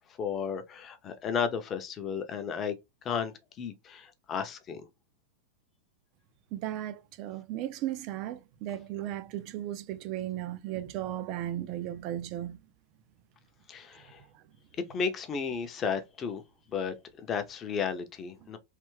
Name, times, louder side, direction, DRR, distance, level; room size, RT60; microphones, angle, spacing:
voice 1, 0.2-2.8 3.0-4.8 13.7-14.2 14.9-16.4 16.7-16.9 17.2-18.6, left 6 dB, 20° left, 0.6 m, -33 dB
voice 2, 6.5-12.6, right 13 dB, 40° right, 0.4 m, -36 dB
3.3 x 2.1 x 3.1 m
supercardioid pair, 160°, 0 cm